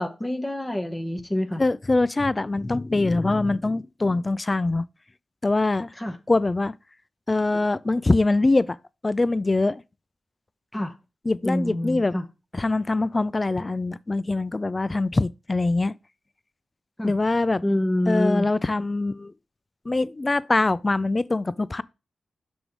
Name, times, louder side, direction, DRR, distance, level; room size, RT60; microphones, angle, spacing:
voice 1, 0.0-1.6 6.0-6.2 10.7-10.9 11.4-12.2 17.0-17.1 17.6-18.5, left 1 dB, 15° left, 1.1 m, -26 dB
voice 2, 1.6-4.9 5.4-5.9 6.3-6.7 7.3-8.8 9.0-9.8 11.2-12.2 12.5-15.9 17.0-17.6 18.1-19.3 19.9-21.8, left 2 dB, 35° left, 0.4 m, -23 dB
6.1 x 3.6 x 4.6 m
supercardioid pair, 45°, 0 cm